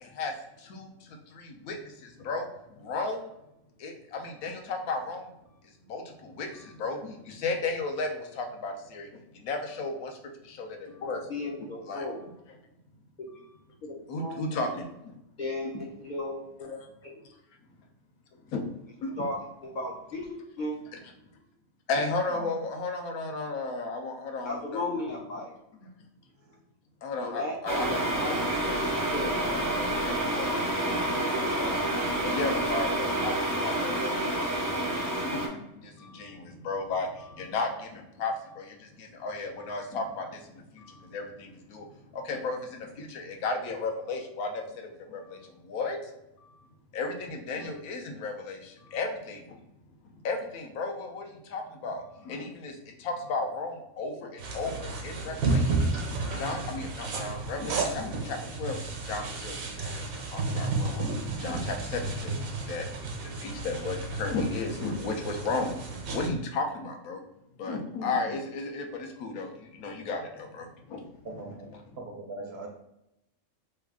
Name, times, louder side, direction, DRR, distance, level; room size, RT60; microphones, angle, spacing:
voice 1, 0.0-0.3 0.6-2.5 2.8-3.3 3.8-5.3 5.8-10.2 10.4-11.3 11.9-12.0 14.1-14.8 16.6-16.8 18.5-18.7 19.0-19.2 21.9-24.8 25.8-25.9 27.0-28.4 28.7-28.9 29.4-31.9 32.2-41.9 42.1-46.0 46.4-46.6 46.9-49.6 50.2-55.8 56.3-58.8 59.0-60.0 60.3-62.9 63.2-65.8 66.1-67.2 67.6-71.1, left 3 dB, 90° left, 3 dB, 1.1 m, -34 dB
voice 2, 11.3-12.2 13.2-13.3 13.8-14.7 15.4-16.7 17.0-17.3 19.2-19.4 19.6-20.7 22.3-22.5 24.4-25.5 27.2-28.8 29.1-29.4, left 2 dB, 60° left, -3 dB, 0.5 m, -35 dB
sound 1, 27.7-35.5, right 1 dB, 25° right, 0.4 m, -28 dB
sound 2, 54.4-66.3, right 3 dB, 80° right, 1.2 m, -32 dB
voice 3, 71.2-72.7, right 2 dB, 65° right, 1 dB, 0.7 m, -41 dB
3.3 x 2.3 x 3.6 m, 0.86 s
omnidirectional pair, 1.5 m